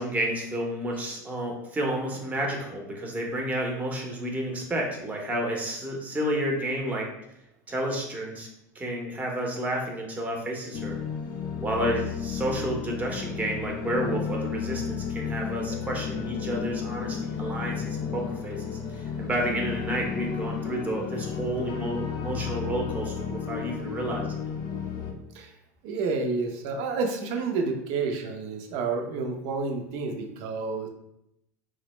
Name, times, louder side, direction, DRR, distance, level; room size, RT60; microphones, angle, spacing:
voice 1, 0.0-7.1 7.7-8.5 8.7-11.0 11.6-18.6 18.9-24.3, right 1 dB, 15° right, 0 dB, 0.7 m, -30 dB
sound 1, 10.7-25.1, left 7 dB, 45° left, 0.5 m, -33 dB
voice 2, 25.8-30.9, right 4 dB, 60° right, 4 dB, 0.6 m, -29 dB
3.8 x 2.1 x 3.0 m, 0.82 s
supercardioid pair, 110°, 10 cm